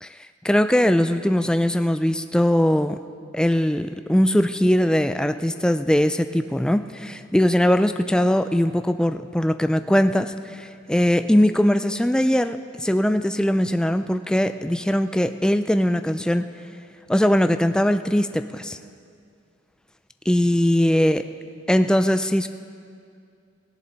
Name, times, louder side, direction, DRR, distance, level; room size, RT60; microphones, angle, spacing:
voice 1, 0.4-3.0 3.3-16.5 17.1-18.8 20.3-21.2 21.7-22.5, equal, 5° left, 9 dB, 0.3 m, -20 dB
17.5 x 17.0 x 4.0 m, 2.3 s
head